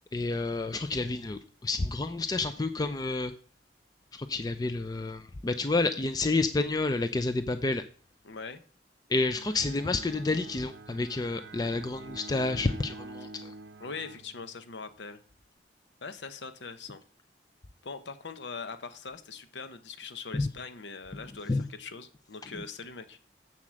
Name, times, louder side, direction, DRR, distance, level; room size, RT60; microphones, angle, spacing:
voice 1, 0.1-3.3 4.1-7.8 9.1-13.5 20.3-20.5 21.5-21.6 22.5-22.6, left 3 dB, 20° left, 10 dB, 0.4 m, -29 dB
voice 2, 8.2-8.6 13.8-15.2 16.0-17.0 17.8-23.2, left 4 dB, 80° left, 10 dB, 0.8 m, -42 dB
Bowed string instrument, 9.1-14.9, right 2 dB, 75° right, 0.6 m, -47 dB
7.6 x 7.3 x 6.2 m, 0.44 s
head